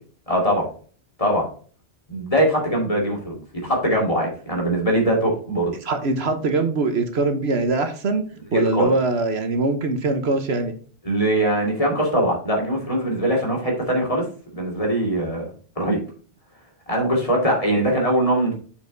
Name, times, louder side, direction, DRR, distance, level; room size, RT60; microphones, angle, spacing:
voice 1, 0.3-0.7 1.2-1.5 2.1-5.7 8.5-8.9 11.0-14.2 14.5-15.5 15.8-16.0 16.9-18.5, right 1 dB, 30° left, -1 dB, 2.5 m, -21 dB
voice 2, 5.8-8.2 8.5-10.7, right 3 dB, 65° right, 7 dB, 1.2 m, -22 dB
6.9 x 5.3 x 3.9 m, 0.43 s
omnidirectional pair, 1.2 m